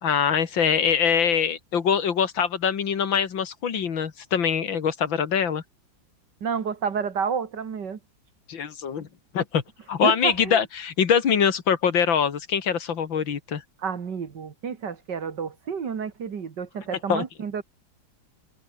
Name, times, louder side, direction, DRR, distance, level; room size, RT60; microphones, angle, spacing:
voice 1, 0.0-5.6 8.5-9.1 9.3-9.6 9.9-13.6 17.1-17.2, left 7 dB, 80° left, 2.6 m, -23 dB
voice 2, 6.4-8.0 10.0-10.6 13.8-17.6, right 6 dB, 65° right, 2.5 m, -30 dB
open air
omnidirectional pair, 2.1 m